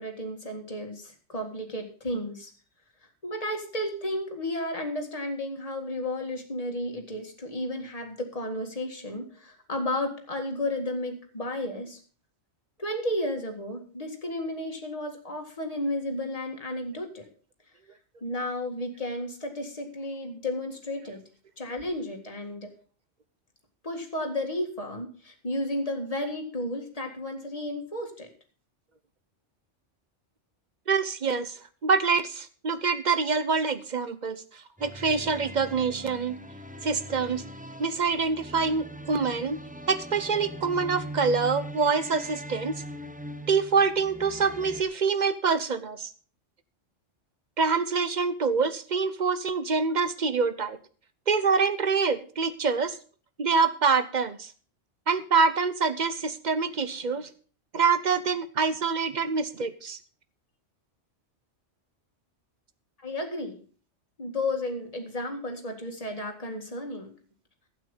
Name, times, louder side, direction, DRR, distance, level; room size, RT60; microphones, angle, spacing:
voice 1, 0.0-2.5 3.2-12.0 12.8-17.3 18.2-21.2 21.6-22.7 23.8-28.3 63.0-63.6 64.2-67.1, left 1 dB, 30° left, 3 dB, 2.1 m, -33 dB
voice 2, 30.9-36.4 36.8-37.4 37.8-39.6 39.9-42.8 43.5-46.1 47.6-50.8 51.3-53.0 53.4-54.5 55.1-57.3 57.7-60.0, right 5 dB, 40° right, 13 dB, 0.8 m, -26 dB
sound 1, 34.8-44.8, equal, 10° right, 0.7 m, -41 dB
12.0 x 8.7 x 5.4 m, 0.42 s
omnidirectional pair, 1.2 m